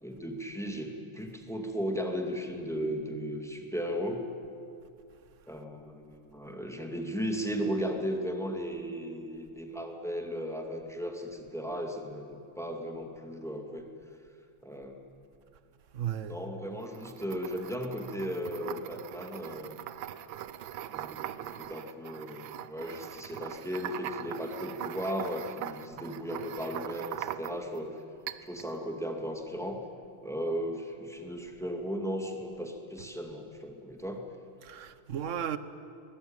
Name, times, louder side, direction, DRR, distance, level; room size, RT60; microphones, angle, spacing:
voice 1, 0.0-4.2 5.5-13.9 14.6-15.0 16.3-19.7 20.9-27.9 28.4-29.8 30.2-34.3, equal, ahead, 2.2 m, -36 dB
voice 2, 15.9-16.4 34.6-35.6, right 9 dB, 50° right, 0.9 m, -34 dB
sound 1, 16.8-27.8 28.3-28.7, right 11 dB, 75° right, 1.4 m, -41 dB
23.5 x 20.5 x 9.0 m
omnidirectional pair, 2.3 m